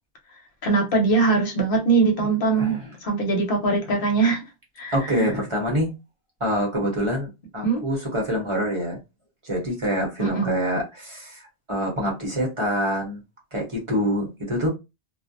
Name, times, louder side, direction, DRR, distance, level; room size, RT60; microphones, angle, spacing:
voice 1, 0.6-4.4 4.8-5.3 7.6-7.8 10.2-10.5, right 4 dB, 55° left, 0.9 m, -22 dB
voice 2, 2.6-2.9 4.9-5.9 6.4-9.0 9.4-13.2 13.5-14.7, equal, 30° right, 0.8 m, -26 dB
2.3 x 2.1 x 2.6 m
omnidirectional pair, 1.2 m